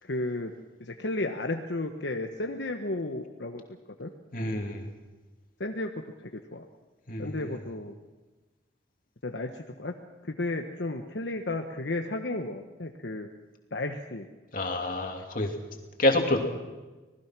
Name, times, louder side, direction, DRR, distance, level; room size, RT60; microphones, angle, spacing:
voice 1, 0.0-0.5 0.8-3.6 4.0-4.1 5.6-5.9 6.2-6.6 7.2-7.9 9.2-10.0 10.2-13.3 13.7-14.3, left 2 dB, 75° left, 4 dB, 1.2 m, -33 dB
voice 2, 4.3-4.9 7.1-7.5 14.5-15.5 16.0-16.4, left 1 dB, 50° left, 3 dB, 2.9 m, -27 dB
26.0 x 19.0 x 6.1 m, 1.2 s
head